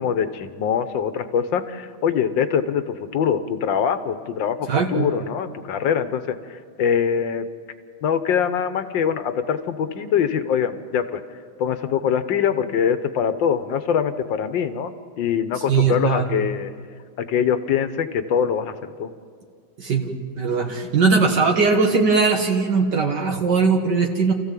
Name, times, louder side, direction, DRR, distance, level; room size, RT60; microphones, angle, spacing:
voice 1, 0.0-7.5 8.0-11.2 11.6-16.7 17.2-19.1, left 7 dB, 75° left, 11 dB, 1.7 m, -23 dB
voice 2, 4.7-5.1 15.7-16.2 19.8-24.3, right 4 dB, 60° right, 2 dB, 2.0 m, -20 dB
29.0 x 15.0 x 7.5 m, 2.1 s
omnidirectional pair, 2.1 m